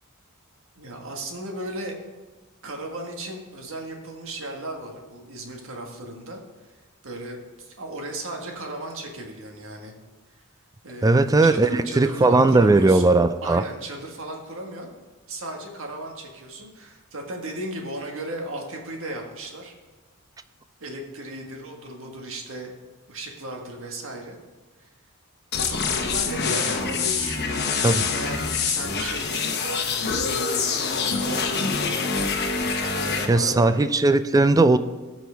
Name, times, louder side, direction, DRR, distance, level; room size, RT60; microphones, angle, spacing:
voice 1, 0.7-2.0 2.6-6.4 7.0-9.9 10.8-13.1 13.4-14.9 15.3-19.7 20.8-22.8 23.1-24.4 25.6-33.9, right 1 dB, 65° right, 1.6 m, -36 dB
voice 2, 11.0-13.6 27.8-28.1 33.3-34.8, right 2 dB, 15° right, 0.4 m, -18 dB
sound 1, 25.5-33.3, left 5 dB, 50° left, 1.0 m, -25 dB
17.5 x 6.2 x 3.5 m
head